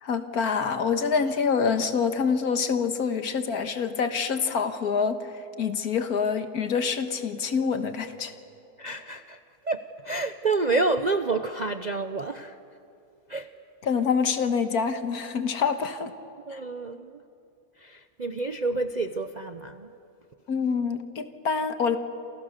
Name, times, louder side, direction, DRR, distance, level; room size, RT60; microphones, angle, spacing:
voice 1, 0.0-5.2 5.6-8.3 13.9-16.1 16.5-16.6 20.5-22.0, left 6 dB, 70° left, 9 dB, 1.8 m, -26 dB
voice 2, 8.8-12.6 13.3-13.5 16.5-17.2 17.8-19.9, right 3 dB, 45° right, 8 dB, 0.6 m, -29 dB
28.5 x 28.0 x 6.7 m, 2.6 s
omnidirectional pair, 1.7 m